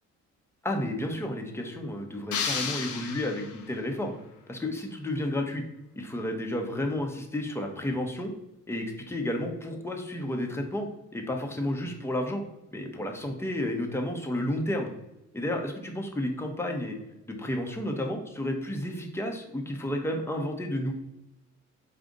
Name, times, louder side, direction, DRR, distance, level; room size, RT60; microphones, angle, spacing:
voice 1, 0.6-4.1 4.5-5.6 5.9-8.3 8.7-10.9 11.1-12.4 12.7-14.9 15.3-17.0 17.3-20.9, left 1 dB, 10° left, 3 dB, 0.8 m, -31 dB
sound 1, 2.3-3.8, left 6 dB, 80° left, 0.7 m, -32 dB
4.9 x 2.5 x 3.8 m, 0.92 s
cardioid pair, 90°, 30 cm